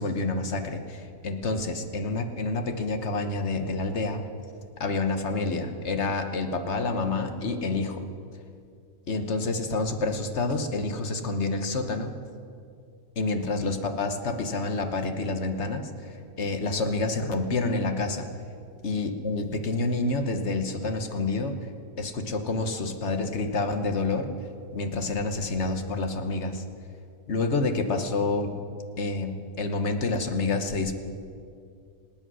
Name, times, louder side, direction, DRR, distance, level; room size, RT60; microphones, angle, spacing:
voice 1, 0.0-4.2 4.8-8.1 9.1-12.1 13.2-18.3 18.8-21.6 22.0-24.3 24.7-26.6 27.3-28.6 29.0-30.9, left 3 dB, 50° left, 7 dB, 1.3 m, -28 dB
26.5 x 8.8 x 6.2 m, 2.3 s
omnidirectional pair, 1.7 m